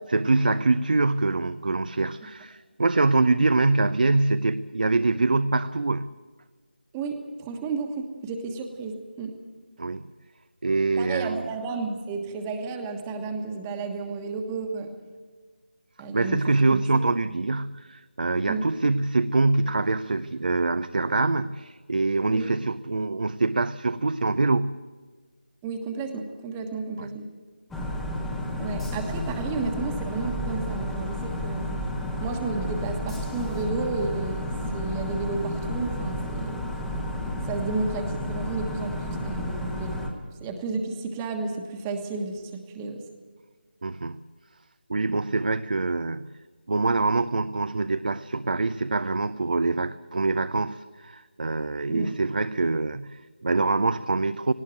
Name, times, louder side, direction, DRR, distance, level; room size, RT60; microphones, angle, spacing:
voice 1, 0.1-6.1 9.8-10.0 10.6-11.5 16.1-24.8 27.0-27.1 43.8-44.2 44.9-46.3 46.7-54.5, right 3 dB, 55° right, 13 dB, 0.6 m, -24 dB
voice 2, 6.9-9.3 11.0-14.9 16.0-16.4 16.7-16.8 18.5-18.6 22.3-22.5 25.6-27.3 28.6-31.7 32.2-36.5 37.4-40.0 40.4-43.0 51.9-52.2, right 4 dB, 10° right, 5 dB, 1.4 m, -32 dB
sound 1, 27.7-40.1, left 1 dB, 5° left, 1.1 m, -31 dB
18.5 x 17.0 x 9.1 m, 1.4 s
figure-of-eight pair, 160°, 6 cm